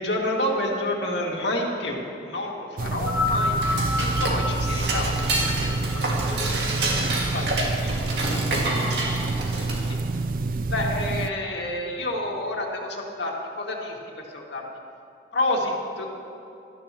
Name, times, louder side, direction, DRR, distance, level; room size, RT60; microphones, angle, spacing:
voice 1, 0.0-3.8 4.2-8.4 9.0-9.2 9.7-10.0 10.7-14.6 15.3-16.1, left 1 dB, 80° left, -1 dB, 2.1 m, -30 dB
sound 1, 2.8-11.3, right 3 dB, 50° right, 0.4 m, -28 dB
sound 2, 2.9-7.5 8.4-8.5, left 3 dB, 10° right, 1.7 m, -29 dB
Dishes pots and pans / Cutlery silverware, 3.3-10.1, right 2 dB, 75° right, 2.0 m, -28 dB
18.0 x 13.0 x 3.0 m, 2.9 s
head